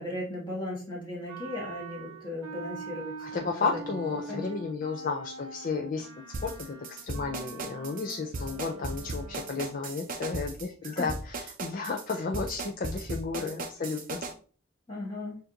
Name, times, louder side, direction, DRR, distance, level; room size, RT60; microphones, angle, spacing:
voice 1, 0.0-3.8 4.3-4.4 10.8-11.1 14.9-15.4, left 1 dB, 20° left, -4 dB, 1.5 m, -37 dB
Wind instrument woodwind instrument, 1.3-9.9, right 4 dB, 80° right, 0.7 m, -44 dB
voice 2, 3.2-6.1 6.4-14.2, left 4 dB, 40° left, 2 dB, 0.4 m, -33 dB
sound 1, 6.3-14.3, right 2 dB, 40° right, 0.5 m, -37 dB
6.6 x 2.6 x 2.8 m, 0.42 s
head